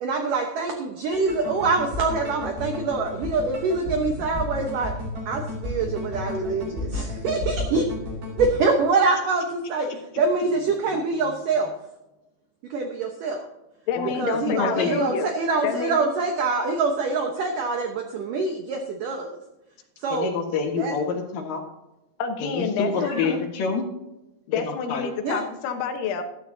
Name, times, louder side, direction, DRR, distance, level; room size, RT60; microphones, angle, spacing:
voice 1, 0.0-4.9 5.3-7.8 8.4-9.9 10.2-11.7 12.7-13.4 14.2-19.4 20.0-20.3 20.8-21.0 22.9-23.3 25.2-25.4, right 4 dB, 80° right, 4 dB, 1.9 m, -25 dB
sound 1, 1.1-8.6, left 1 dB, 50° right, 6.0 m, -33 dB
voice 2, 13.9-15.3 15.6-16.0 22.2-23.4 24.5-26.2, left 6 dB, 80° left, 6 dB, 3.5 m, -28 dB
voice 3, 14.5-14.9 20.1-21.6 22.4-23.8 24.9-25.1, left 5 dB, 60° left, 1 dB, 2.7 m, -27 dB
13.5 x 13.0 x 2.7 m, 0.96 s
omnidirectional pair, 5.4 m